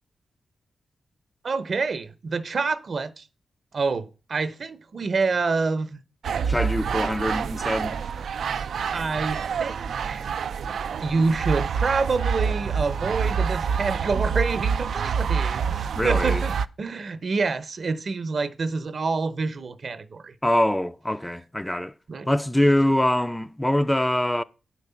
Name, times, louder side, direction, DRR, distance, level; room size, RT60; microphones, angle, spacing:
voice 1, 1.4-3.2 3.7-6.0 8.3-8.5 8.9-10.3 11.0-20.3 22.1-22.3, right 4 dB, 55° right, 0.8 m, -27 dB
sound 1, 6.2-16.7, right 6 dB, 75° right, 0.4 m, -27 dB
voice 2, 6.4-8.0 16.0-16.5 20.4-21.9 22.3-24.4, left 1 dB, 10° left, 0.4 m, -23 dB
9.2 x 4.6 x 6.8 m
cardioid pair, 85°, 0 cm